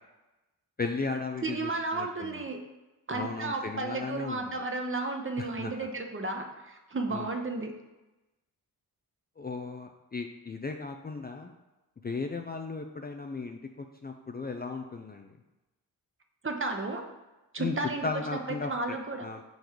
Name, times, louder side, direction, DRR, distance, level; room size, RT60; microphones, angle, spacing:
voice 1, 0.8-2.4 3.1-4.7 5.4-5.7 7.1-7.3 9.4-11.5 12.0-13.6 14.0-15.3 17.6-17.8 18.0-19.4, left 4 dB, 25° left, 4 dB, 0.5 m, -36 dB
voice 2, 1.4-2.6 3.1-7.7 16.4-17.0 17.5-19.2, right 3 dB, 30° right, 3 dB, 0.9 m, -33 dB
5.1 x 4.0 x 4.6 m, 1.0 s
cardioid pair, 60°, 39 cm